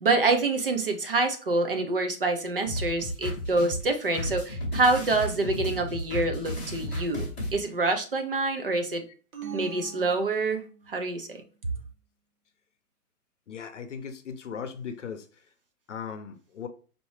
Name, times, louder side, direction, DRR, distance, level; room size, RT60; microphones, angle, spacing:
voice 1, 0.0-9.0 9.5-10.6 10.9-11.4, right 3 dB, 40° right, 0.5 m, -26 dB
sound 1, 2.6-7.5, equal, 5° left, 0.7 m, -33 dB
sound 2, 9.3-11.0, right 6 dB, 65° right, 0.9 m, -41 dB
voice 2, 13.5-15.3 15.9-16.7, left 7 dB, 50° left, 0.7 m, -38 dB
4.4 x 2.7 x 3.2 m
hypercardioid pair, 170°, 45 cm